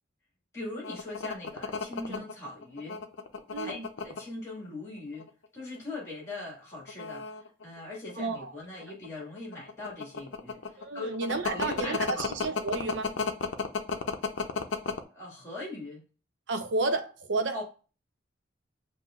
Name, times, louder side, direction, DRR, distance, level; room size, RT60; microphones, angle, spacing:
voice 1, 0.5-3.0 3.6-5.3 5.5-11.2 11.4-12.3 15.1-16.0 17.5-17.6, left 2 dB, 15° left, 1.8 m, -40 dB
sound 1, 0.8-4.2 5.0-5.5 5.8-5.9 6.7-8.4 8.8-15.0, left 4 dB, 70° left, 0.6 m, -32 dB
voice 2, 3.5-3.9 8.2-8.5 10.8-13.1 16.5-17.6, right 3 dB, 65° right, 0.6 m, -31 dB
7.0 x 2.7 x 2.3 m
head